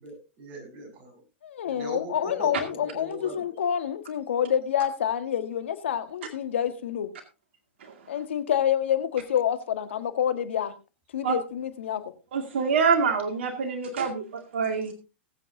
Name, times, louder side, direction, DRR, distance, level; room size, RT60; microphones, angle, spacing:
voice 1, 0.0-1.2 1.6-3.4, right 2 dB, 45° right, 6.8 m, -40 dB
voice 2, 1.4-7.1 8.1-10.7 11.1-12.1, left 9 dB, 70° left, 1.6 m, -27 dB
voice 3, 12.3-14.9, right 5 dB, 70° right, 2.1 m, -26 dB
20.0 x 8.4 x 2.7 m
hypercardioid pair, 105°, 7 cm